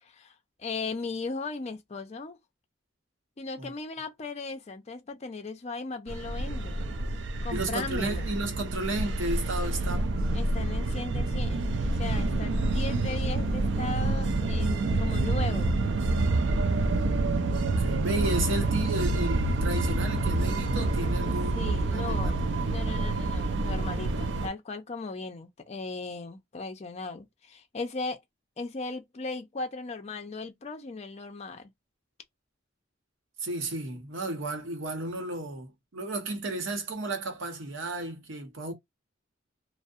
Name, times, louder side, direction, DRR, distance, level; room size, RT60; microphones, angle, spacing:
voice 1, 0.0-2.4 3.4-6.9 7.4-8.3 10.3-15.8 21.5-22.4 22.7-28.2 28.6-31.7, left 3 dB, 35° left, 0.5 m, -37 dB
sound 1, 6.1-24.5, right 2 dB, 65° right, 0.4 m, -28 dB
voice 2, 7.5-10.2 17.6-22.6 33.4-38.7, right 2 dB, 80° right, 0.8 m, -33 dB
2.6 x 2.0 x 2.4 m
head